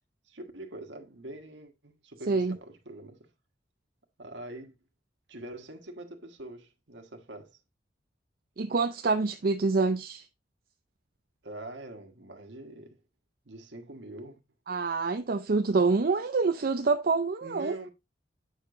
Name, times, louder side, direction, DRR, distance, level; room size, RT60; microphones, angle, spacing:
voice 1, 0.2-3.3 4.2-4.8 5.3-7.6 11.4-13.0 13.4-14.4 17.4-17.9, right 1 dB, 85° right, 1.5 m, -44 dB
voice 2, 8.6-10.2 14.7-17.8, right 4 dB, 55° right, 0.6 m, -26 dB
9.1 x 6.7 x 2.6 m
head